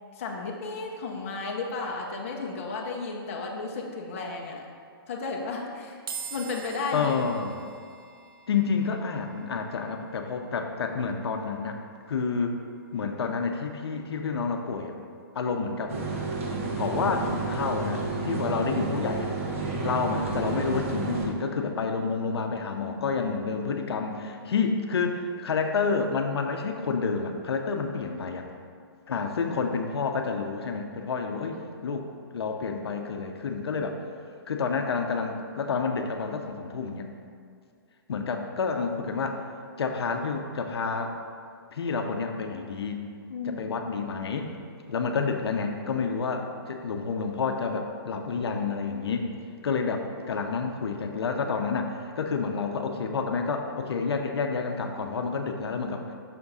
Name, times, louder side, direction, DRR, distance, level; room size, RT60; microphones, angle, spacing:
voice 1, 0.1-4.7 5.1-6.0 6.3-7.2 18.3-18.5 28.3-28.4 31.4-31.8 43.3-43.7, left 3 dB, 35° left, 0 dB, 0.7 m, -34 dB
sound 1, 6.1-19.4, right 5 dB, 65° right, 0.7 m, -48 dB
voice 2, 6.9-7.6 8.5-11.8 12.1-12.6 12.9-15.0 15.3-16.0 16.7-19.3 19.8-28.5 29.1-31.6 31.8-34.0 34.5-37.1 38.1-39.4 39.8-41.1 41.7-43.0 43.5-44.5 44.9-49.3 49.6-56.0, left 5 dB, 90° left, 4 dB, 0.6 m, -29 dB
sound 2, 15.9-21.3, right 3 dB, 30° right, 0.6 m, -31 dB
5.9 x 3.5 x 5.4 m, 2.2 s
hypercardioid pair, 175°, 13 cm